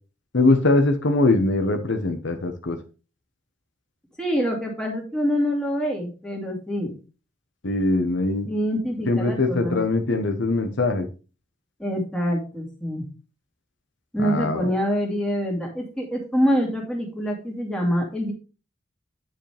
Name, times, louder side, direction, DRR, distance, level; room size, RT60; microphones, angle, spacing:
voice 1, 0.3-2.8 7.6-8.5 9.1-11.1 14.2-14.7, left 2 dB, 65° left, 6 dB, 1.1 m, -22 dB
voice 2, 4.2-6.9 8.5-9.8 11.8-13.1 14.1-18.3, equal, 5° left, -1 dB, 2.4 m, -25 dB
9.8 x 5.2 x 3.4 m, 0.33 s
head